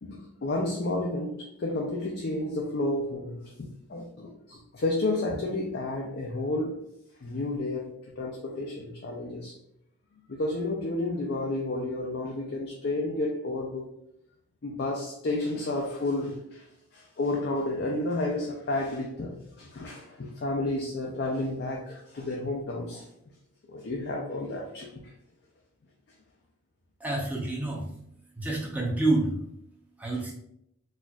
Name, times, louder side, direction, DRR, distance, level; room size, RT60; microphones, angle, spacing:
voice 1, 0.0-6.9 7.2-9.5 10.3-13.9 14.6-16.7 16.9-23.1 23.7-25.1, left 2 dB, 50° left, 0 dB, 0.4 m, -31 dB
voice 2, 27.0-27.9 28.4-29.4 30.0-30.3, right 2 dB, 5° right, -2 dB, 0.6 m, -28 dB
4.2 x 2.4 x 2.3 m, 0.76 s
head